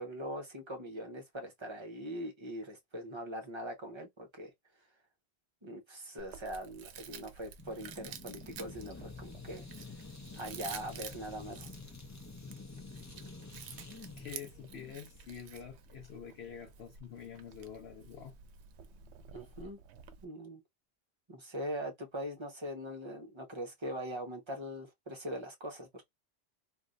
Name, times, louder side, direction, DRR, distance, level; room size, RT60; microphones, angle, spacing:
voice 1, 0.0-4.5 5.6-9.6 10.3-11.7 19.3-19.8 20.2-20.6 21.3-26.1, equal, 30° right, 0.8 m, -42 dB
Chewing mastication, 6.2-20.3, right 7 dB, 85° right, 0.9 m, -51 dB
sound 1, 7.6-15.6, left 3 dB, 20° left, 0.5 m, -49 dB
voice 2, 14.2-18.4, left 8 dB, 75° left, 0.9 m, -47 dB
3.2 x 2.6 x 2.5 m
omnidirectional pair, 1.1 m